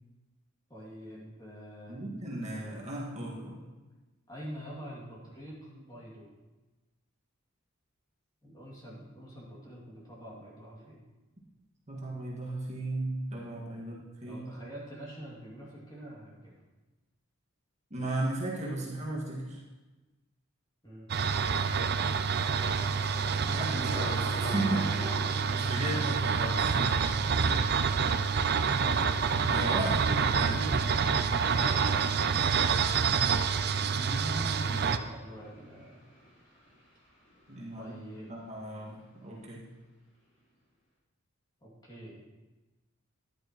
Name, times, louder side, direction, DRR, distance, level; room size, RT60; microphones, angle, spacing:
voice 1, 0.7-2.0 4.3-6.3 8.4-11.0 13.8-16.5 20.8-21.1 25.9-26.2 26.8-28.1 31.7-33.0 35.0-36.0 37.8-38.3 41.6-42.3, equal, 20° left, -5 dB, 2.4 m, -46 dB
voice 2, 1.9-3.6 11.9-14.4 17.9-19.6 23.5-25.1 25.5-26.7 29.5-30.8 34.0-35.0 37.5-37.9 38.3-39.6, right 2 dB, 30° right, -4 dB, 1.8 m, -35 dB
sound 1, 21.1-35.0, right 5 dB, 50° right, 0.5 m, -27 dB
Thunder, 22.3-38.1 38.3-39.0 39.4-39.6, equal, 40° left, 3.5 m, -46 dB
13.0 x 10.5 x 3.0 m, 1.2 s
head